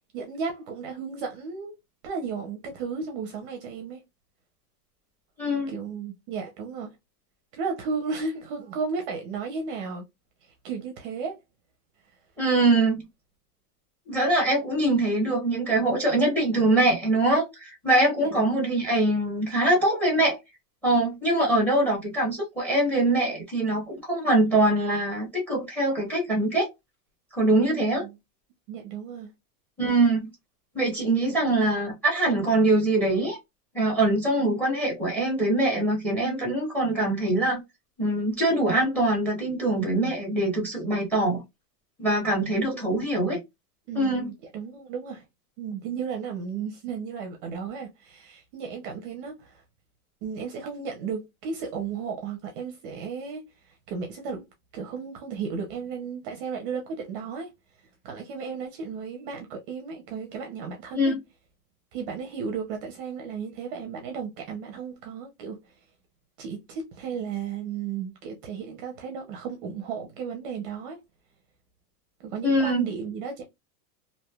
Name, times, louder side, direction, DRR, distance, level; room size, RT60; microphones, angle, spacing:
voice 1, 0.1-1.8 2.0-4.0 5.7-7.0 7.5-10.0 10.4-11.4 18.2-18.8 27.7-28.1 28.7-29.3 42.6-42.9 43.9-45.2 45.6-49.6 50.2-54.4 54.7-57.5 58.0-61.2 61.9-65.6 66.4-71.0 72.2-73.4, right 5 dB, 35° right, 0.5 m, -34 dB
voice 2, 5.4-5.7 12.4-13.1 14.1-20.4 20.8-26.7 27.4-28.1 29.8-30.3 30.7-33.4 33.7-37.6 38.0-41.4 42.0-43.4 43.9-44.3 60.9-61.2 72.4-72.8, right 2 dB, 5° left, 0.8 m, -23 dB
3.1 x 2.6 x 2.2 m
supercardioid pair, 170°, 47 cm